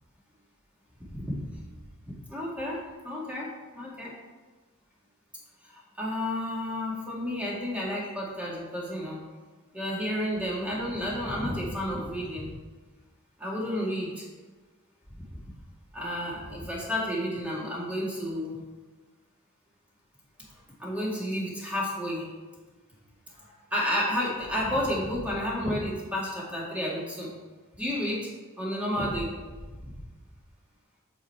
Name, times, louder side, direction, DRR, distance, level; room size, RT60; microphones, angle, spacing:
voice 1, 1.1-1.6 2.0-4.1 5.7-9.2 9.7-12.5 13.4-14.3 15.2-15.3 15.9-18.6 20.8-22.3 23.3-27.3 27.8-28.3 28.6-29.3 29.8-29.9, equal, 5° right, -5 dB, 2.1 m, -31 dB
8.8 x 5.5 x 4.7 m, 1.3 s
head